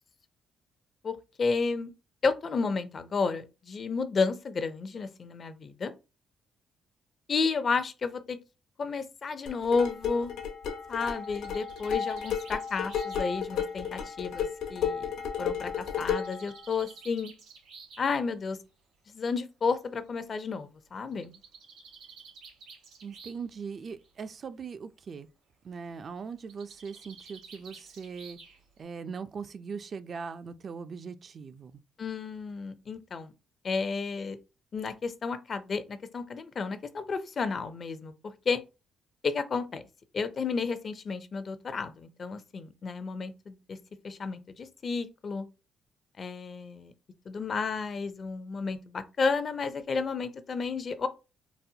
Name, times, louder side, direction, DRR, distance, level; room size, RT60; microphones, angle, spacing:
voice 1, 1.0-1.9 2.2-5.9 7.3-8.4 8.8-10.4 10.9-14.5 14.7-15.1 15.4-17.3 18.0-18.6 19.1-21.3 32.0-33.3 33.6-34.4 34.7-38.6 39.2-39.8 40.1-43.8 44.0-45.5 46.2-46.9 47.3-51.1, left 4 dB, 45° left, 0.4 m, -32 dB
sound 1, 9.5-16.4, left 7 dB, 90° left, 0.8 m, -33 dB
Bird, 10.9-14.7 15.8-18.1 19.2-19.3 19.6-19.7 20.0-20.1 21.1-23.5 23.8-24.3 26.4-28.8, right 5 dB, 80° right, 1.9 m, -52 dB
voice 2, 23.0-25.3 25.6-28.4 28.8-31.8, right 5 dB, 45° right, 0.3 m, -40 dB
4.0 x 2.1 x 2.7 m
cardioid pair, 90°, 0 cm